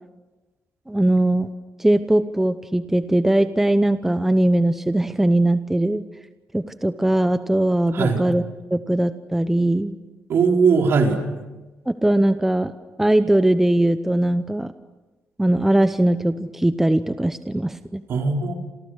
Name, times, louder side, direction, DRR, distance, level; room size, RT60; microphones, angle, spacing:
voice 1, 0.9-1.5 1.8-6.0 6.5-8.4 8.7-9.9 11.9-12.7 13.0-14.7 15.4-18.0, right 1 dB, 5° right, 11 dB, 0.8 m, -20 dB
voice 2, 10.3-11.2 18.1-18.5, right 5 dB, 55° right, 3 dB, 4.3 m, -19 dB
30.0 x 28.0 x 6.4 m, 1.1 s
cardioid pair, 130°, 5 cm